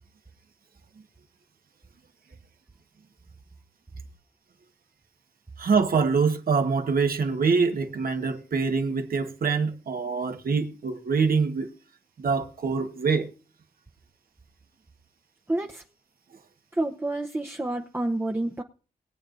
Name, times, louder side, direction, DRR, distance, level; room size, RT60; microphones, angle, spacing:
voice 1, 5.6-11.7 12.2-13.3, right 5 dB, 70° right, 1.4 m, -25 dB
voice 2, 15.5-15.8 16.7-18.6, right 2 dB, 15° right, 0.8 m, -28 dB
21.5 x 8.7 x 2.6 m
wide cardioid pair, 110°, 16 cm